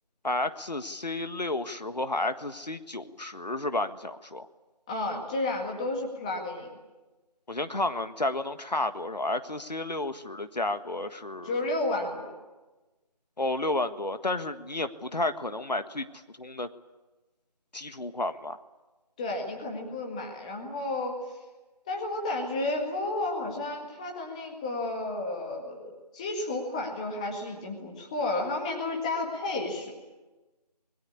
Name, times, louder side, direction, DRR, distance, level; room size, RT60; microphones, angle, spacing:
voice 1, 0.2-4.5 7.5-11.5 13.4-16.1 16.4-16.7 17.7-18.6, left 2 dB, 80° left, 10 dB, 1.6 m, -31 dB
voice 2, 4.9-6.7 11.4-12.3 19.2-21.1 21.9-29.9, left 2 dB, 10° left, 1 dB, 1.9 m, -32 dB
24.5 x 21.5 x 8.6 m, 1.1 s
figure-of-eight pair, 165°, 21 cm